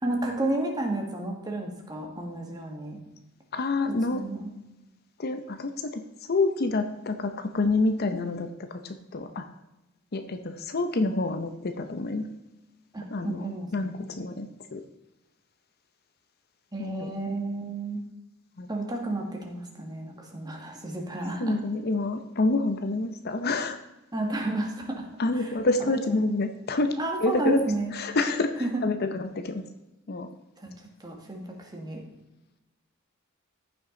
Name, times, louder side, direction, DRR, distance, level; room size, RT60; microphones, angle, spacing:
voice 1, 0.0-3.0 4.1-4.5 12.9-14.0 16.7-18.0 18.7-21.6 24.1-25.0 25.3-26.0 27.0-27.9 28.6-28.8 30.6-30.7 31.0-32.0, right 2 dB, 20° right, 1 dB, 1.7 m, -31 dB
voice 2, 3.5-4.2 5.2-6.0 6.3-9.4 10.1-12.3 13.1-14.5 14.7-14.8 16.8-17.2 18.6-18.7 21.4-23.8 25.2-26.9 27.2-27.6 27.9-28.5 28.8-29.6 30.1-30.3, left 2 dB, 50° left, 8 dB, 0.7 m, -27 dB
14.5 x 6.0 x 3.8 m, 0.99 s
head